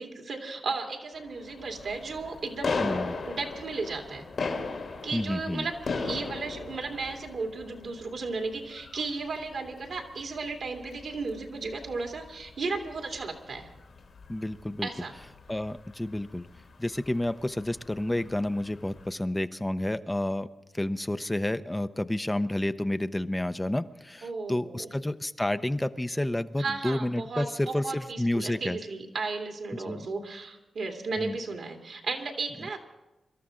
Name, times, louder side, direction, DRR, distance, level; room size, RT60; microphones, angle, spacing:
voice 1, 0.0-2.9 3.3-4.3 5.0-13.7 14.8-15.1 24.2-24.9 26.6-32.8, right 3 dB, 75° right, 2 dB, 2.3 m, -34 dB
sound 1, 1.1-19.1, left 4 dB, 70° left, 2.4 m, -39 dB
voice 2, 2.8-3.2 5.1-5.7 14.3-14.9 15.5-16.5 16.8-20.5 20.7-28.8 29.9-30.1 31.2-31.4, left 1 dB, 15° left, 10 dB, 0.6 m, -30 dB
24.0 x 13.0 x 3.8 m, 1.0 s
cardioid pair, 50°, 0 cm